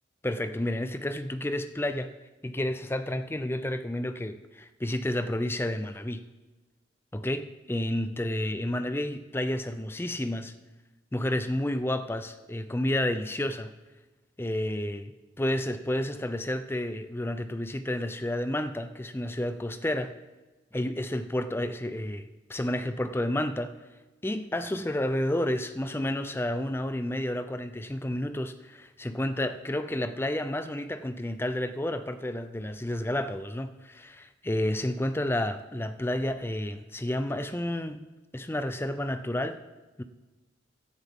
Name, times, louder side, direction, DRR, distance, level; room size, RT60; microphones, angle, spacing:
voice 1, 0.2-2.1 2.4-6.2 7.1-10.5 11.1-13.7 14.4-15.1 15.4-20.1 20.7-23.7 24.2-38.1 38.3-39.6 40.0-40.1, left 1 dB, 10° left, 10 dB, 0.5 m, -30 dB
16.0 x 9.6 x 3.7 m, 1.2 s
head